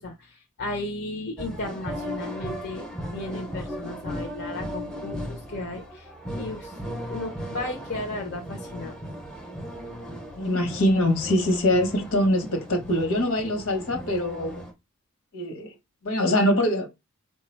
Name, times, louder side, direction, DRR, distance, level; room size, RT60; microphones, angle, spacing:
voice 1, 0.0-6.1 6.4-6.8 7.1-9.0, left 2 dB, 50° left, 0.7 m, -35 dB
sound 1, 1.4-14.7, equal, 5° left, 0.7 m, -37 dB
voice 2, 10.4-14.6 15.3-15.7 16.0-16.9, left 1 dB, 70° left, 1.1 m, -23 dB
4.6 x 2.3 x 4.4 m
head